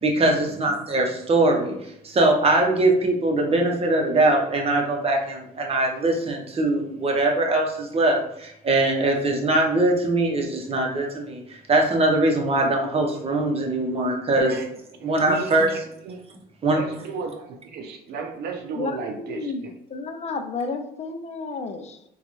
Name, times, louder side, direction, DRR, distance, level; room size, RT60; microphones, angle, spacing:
voice 1, 0.0-1.7 2.0-14.6 15.0-15.7 16.6-16.8, right 2 dB, 35° right, 1 dB, 0.9 m, -22 dB
voice 2, 15.0-16.2 16.7-19.7, right 4 dB, 75° right, 4 dB, 0.6 m, -35 dB
voice 3, 18.8-19.6 19.9-22.0, left 4 dB, 40° left, 6 dB, 0.4 m, -31 dB
3.8 x 2.3 x 3.0 m, 0.76 s
cardioid pair, 95°, 17 cm